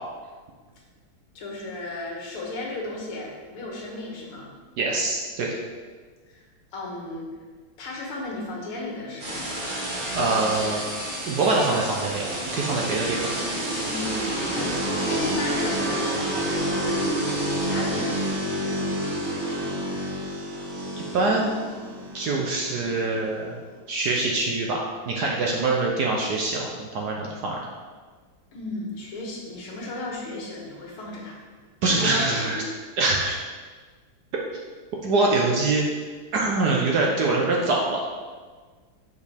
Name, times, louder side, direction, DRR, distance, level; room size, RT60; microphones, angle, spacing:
voice 1, 1.4-4.5 6.3-6.4 6.7-7.3 7.8-9.4 13.8-18.5 28.5-31.4 31.9-32.7, left 2 dB, 90° left, -3 dB, 2.2 m, -34 dB
voice 2, 4.8-5.5 10.1-10.8 11.2-13.3 21.1-21.5 22.1-23.6 23.9-27.6 31.8-32.6 33.0-33.4 35.0-35.8 36.3-38.0, right 3 dB, 65° right, -1 dB, 1.0 m, -24 dB
sound 1, 9.2-23.7, right 1 dB, 30° right, 1.2 m, -29 dB
6.6 x 5.2 x 3.4 m, 1.5 s
omnidirectional pair, 2.3 m